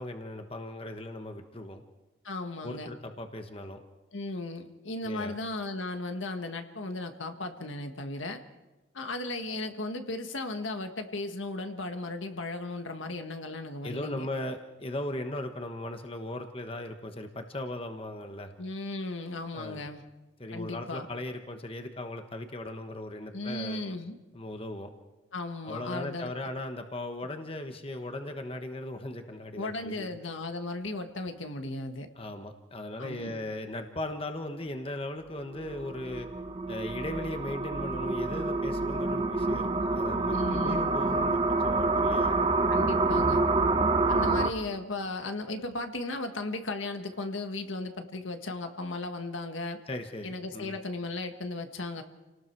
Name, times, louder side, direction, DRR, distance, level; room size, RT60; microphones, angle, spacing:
voice 1, 0.0-1.8 2.6-3.8 5.0-5.4 13.8-18.5 19.5-19.9 20.4-23.8 24.3-24.9 25.6-30.1 32.2-36.3 36.7-42.4 44.4-44.5 49.9-50.7, left 1 dB, 30° left, 6 dB, 1.2 m, -38 dB
voice 2, 2.2-2.9 4.1-8.4 8.9-14.3 18.6-20.0 20.5-21.1 23.3-24.1 25.3-26.3 29.6-32.1 33.0-33.3 40.3-40.9 42.7-43.4 44.1-49.8 50.2-52.0, left 2 dB, 80° left, 6 dB, 1.7 m, -36 dB
sound 1, 35.5-44.5, right 3 dB, 25° right, 1.0 m, -27 dB
30.0 x 19.0 x 4.7 m, 1.1 s
head